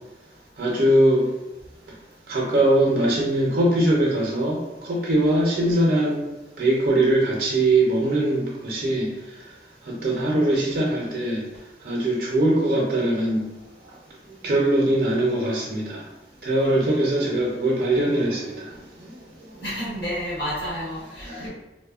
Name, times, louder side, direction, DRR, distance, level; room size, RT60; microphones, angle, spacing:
voice 1, 0.6-1.3 2.3-6.2 6.6-9.1 9.9-11.4 11.8-13.5 14.4-16.0 16.4-18.7 19.0-19.1 21.2-21.5, right 1 dB, 50° right, -4 dB, 0.5 m, -21 dB
voice 2, 19.6-21.5, equal, 75° left, -6 dB, 1.0 m, -31 dB
3.0 x 2.0 x 2.3 m, 1.0 s
head